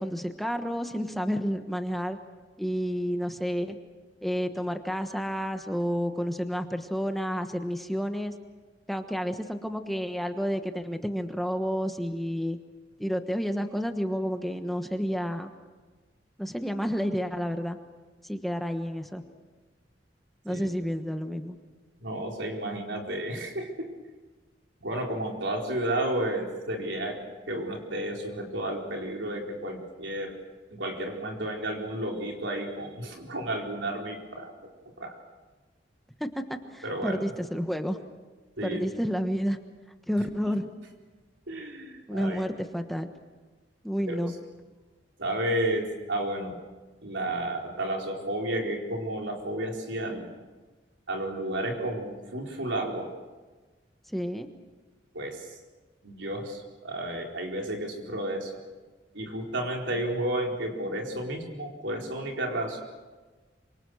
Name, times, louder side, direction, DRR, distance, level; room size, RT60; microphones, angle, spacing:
voice 1, 0.0-2.2 2.6-3.8 4.2-8.3 8.9-12.6 13.0-15.5 16.4-17.8 18.2-19.2 20.4-21.6 36.2-36.4 36.7-38.0 38.6-39.6 40.1-40.7 42.1-43.1 43.8-44.3 54.1-54.5, equal, ahead, 6 dB, 1.2 m, -30 dB
voice 2, 22.0-23.9 24.8-30.4 30.7-34.7 35.0-35.1 36.8-37.2 38.6-38.8 40.5-40.6 41.5-42.4 44.1-44.3 45.2-46.6 47.0-50.3 51.1-53.1 55.1-55.5 56.0-58.6 59.1-62.8, right 1 dB, 85° right, 1 dB, 4.4 m, -32 dB
27.5 x 25.0 x 6.4 m, 1.3 s
head